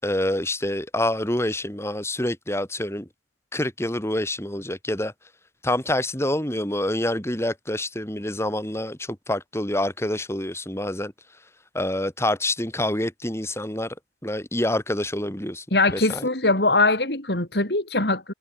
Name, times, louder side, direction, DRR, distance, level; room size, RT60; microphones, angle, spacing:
voice 1, 0.0-3.1 3.5-5.1 5.6-11.1 11.7-13.9 14.2-15.6 15.9-16.3, left 1 dB, 15° left, 5.9 m, -27 dB
voice 2, 15.7-18.3, left 2 dB, 65° left, 5.3 m, -21 dB
head